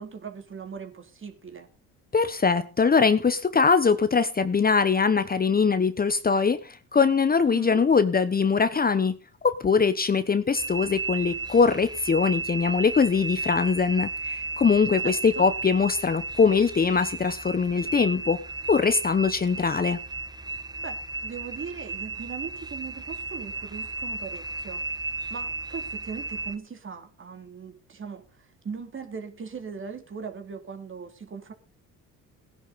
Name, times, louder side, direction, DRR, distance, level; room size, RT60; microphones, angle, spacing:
voice 1, 0.0-1.7 7.5-7.9 15.0-15.5 20.8-31.5, right 6 dB, 35° right, 3.1 m, -39 dB
voice 2, 2.1-18.4 18.7-20.0, left 5 dB, 25° left, 1.0 m, -22 dB
sound 1, 10.6-26.6, right 3 dB, 10° right, 1.3 m, -34 dB
17.0 x 10.5 x 4.1 m
supercardioid pair, 80°, 35 cm